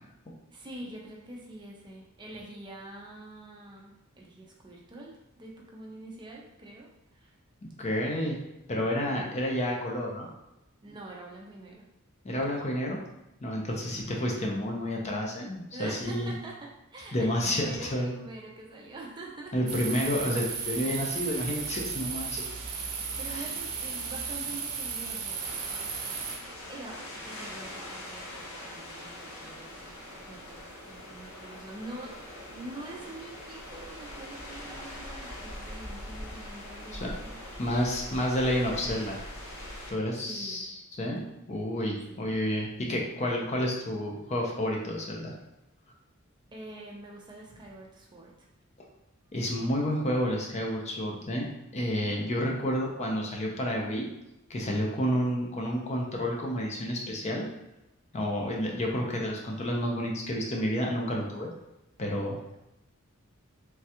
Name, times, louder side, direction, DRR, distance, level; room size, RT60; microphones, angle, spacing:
voice 1, 0.5-7.3 10.8-11.9 13.8-14.0 15.7-19.5 23.2-25.8 26.3-32.2 32.5-37.4 40.2-40.7 42.1-42.3 46.5-48.5, right 2 dB, 20° right, -2 dB, 0.4 m, -45 dB
voice 2, 7.8-8.4 8.7-10.3 12.2-13.0 13.4-16.3 17.1-18.1 19.5-22.4 23.3-23.4 36.9-37.1 37.6-39.2 39.9-45.3 49.3-51.5 51.7-54.1 54.5-57.5 58.1-61.5 62.0-62.4, equal, 30° left, -1 dB, 0.5 m, -30 dB
sound 1, 19.7-26.4, right 5 dB, 85° right, 0.6 m, -35 dB
sound 2, 25.4-39.9, left 1 dB, 75° left, 0.7 m, -42 dB
3.2 x 2.3 x 2.8 m, 0.91 s
head